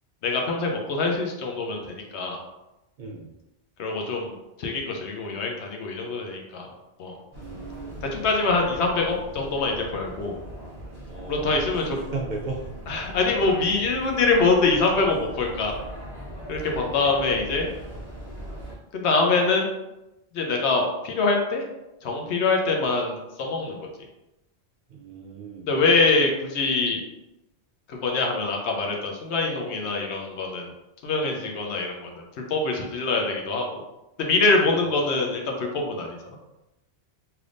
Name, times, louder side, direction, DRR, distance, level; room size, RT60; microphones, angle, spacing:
voice 1, 0.2-2.4 3.8-6.7 7.0-7.2 8.0-10.4 11.3-12.0 12.9-15.8 16.5-17.7 18.9-19.7 20.3-21.6 22.0-23.9 25.7-27.0 27.9-30.7 31.0-32.0 32.5-33.8 34.2-36.2, left 3 dB, 85° left, 1 dB, 0.9 m, -24 dB
voice 2, 3.0-3.3 7.4-8.0 11.1-11.7 12.1-12.7 16.9-17.3 24.9-25.7 34.6-34.9, right 3 dB, 55° right, -1 dB, 0.5 m, -36 dB
sound 1, 7.3-18.7, equal, 25° right, 0.9 m, -40 dB
3.3 x 2.8 x 2.5 m, 0.96 s
omnidirectional pair, 1.1 m